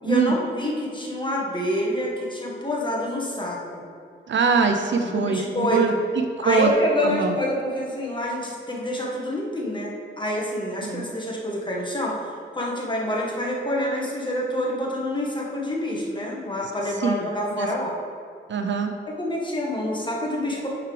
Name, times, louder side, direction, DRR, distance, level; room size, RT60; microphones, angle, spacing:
voice 1, 0.0-3.6 5.0-6.0 6.4-17.9 19.1-20.7, left 1 dB, 20° left, -3 dB, 1.6 m, -27 dB
voice 2, 4.3-5.9 6.4-6.7 7.0-7.3 10.9-11.0 17.0-17.2 17.6-17.7 18.5-18.9, right 5 dB, 65° right, 5 dB, 0.6 m, -22 dB
9.4 x 4.7 x 3.4 m, 2.3 s
cardioid pair, 70°, 21 cm